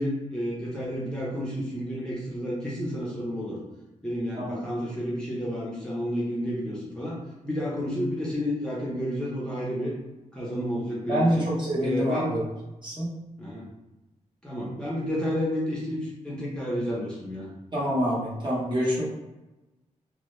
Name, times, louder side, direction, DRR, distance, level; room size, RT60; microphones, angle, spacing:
voice 1, 0.0-3.6 4.0-7.2 7.4-9.9 10.3-11.5 11.8-12.3 13.4-13.7 14.4-17.5, equal, 5° left, -7 dB, 0.7 m, -31 dB
voice 2, 11.1-12.4 12.8-13.2 17.7-19.0, equal, 35° right, -6 dB, 1.0 m, -26 dB
2.2 x 2.2 x 3.0 m, 1.0 s
wide cardioid pair, 105°, 13 cm